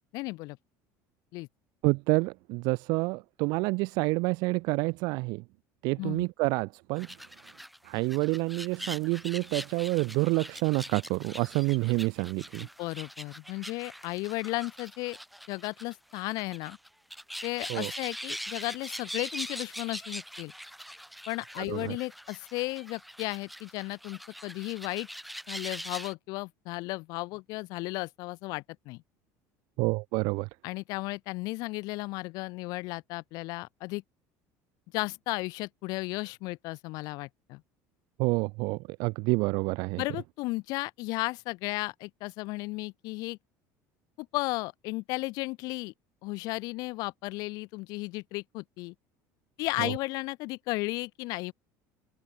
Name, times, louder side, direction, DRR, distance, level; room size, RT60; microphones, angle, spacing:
voice 1, 0.1-0.6 1.3-1.5 6.0-6.2 12.8-15.2 15.5-16.8 17.4-20.5 21.3-25.1 25.5-29.0 30.6-34.0 34.9-37.6 40.0-43.4 44.2-45.9 46.2-48.9 49.6-51.5, left 23 dB, 60° left, 0.5 m, -34 dB
voice 2, 1.8-5.4 5.8-7.1 7.8-12.7 17.7-17.9 21.6-22.0 29.8-30.5 38.2-40.0 49.8-49.9, right 27 dB, 65° right, 0.5 m, -28 dB
sound 1, 7.0-26.1, equal, ahead, 1.4 m, -42 dB
open air
cardioid pair, 155°, 8 cm